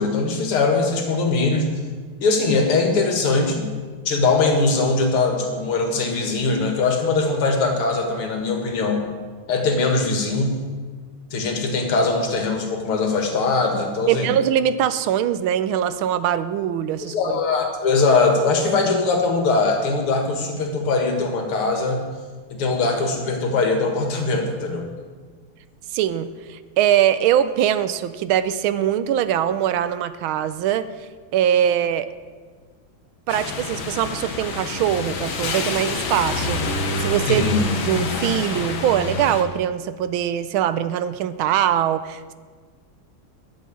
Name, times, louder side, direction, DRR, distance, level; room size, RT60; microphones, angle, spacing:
voice 1, 0.0-1.7 2.2-3.6 4.1-9.0 9.5-10.6 11.3-14.3 17.0-22.1 22.5-24.9 37.3-37.7, left 3 dB, 80° left, 3 dB, 2.7 m, -21 dB
voice 2, 14.1-17.1 25.9-30.9 31.3-32.1 33.3-36.6 37.0-37.5 37.8-42.3, right 10 dB, 75° right, 13 dB, 1.3 m, -22 dB
sound 1, 33.3-39.4, left 3 dB, 65° left, 2.0 m, -27 dB
12.0 x 7.3 x 8.5 m, 1.5 s
omnidirectional pair, 2.4 m